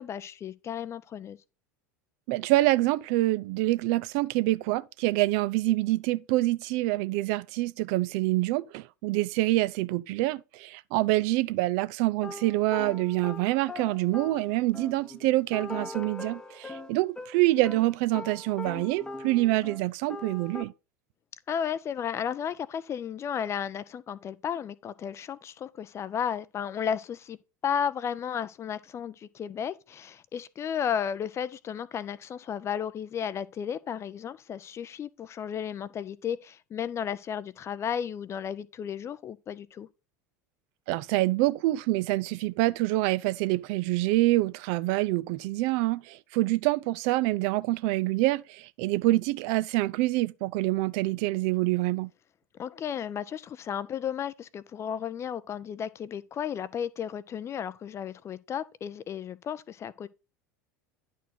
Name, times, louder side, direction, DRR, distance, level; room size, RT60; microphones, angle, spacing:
voice 1, 0.0-1.4 21.5-27.4 27.6-39.9 52.6-60.1, left 8 dB, 30° left, 0.5 m, -33 dB
voice 2, 2.3-20.7 40.9-52.1, right 18 dB, 50° right, 0.4 m, -26 dB
sound 1, 12.2-19.8 20.1-20.6, left 2 dB, 5° left, 0.8 m, -41 dB
10.0 x 4.5 x 4.2 m
figure-of-eight pair, 80°, 10 cm